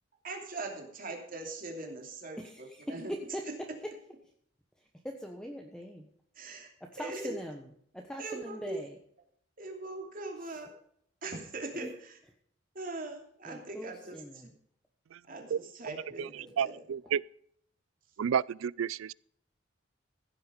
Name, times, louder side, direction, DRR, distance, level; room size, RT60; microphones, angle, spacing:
voice 1, 0.2-3.1 3.5-3.8 6.3-6.7 7.0-7.4 8.2-8.8 9.6-10.8 11.2-12.2 12.7-14.5 15.2-16.8, right 2 dB, 45° right, 2.8 m, -41 dB
voice 2, 2.4-3.4 4.8-6.1 6.9-7.6 7.9-9.0 10.4-10.6 11.7-11.9 13.4-14.5, equal, 5° left, 1.1 m, -41 dB
voice 3, 16.6-17.2 18.2-19.1, right 8 dB, 90° right, 0.4 m, -30 dB
15.5 x 8.0 x 5.1 m
head